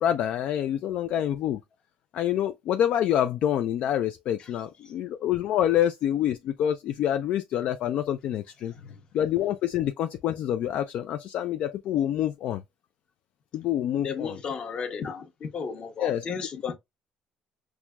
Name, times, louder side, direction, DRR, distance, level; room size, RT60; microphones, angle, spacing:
voice 1, 0.0-1.6 2.1-8.7 9.1-12.6 13.5-14.4 16.0-16.2, left 11 dB, 65° left, 0.3 m, -27 dB
voice 2, 8.7-9.0 14.0-16.7, left 6 dB, 45° left, 0.9 m, -34 dB
5.9 x 2.1 x 2.2 m
cardioid pair, 120°, 2 cm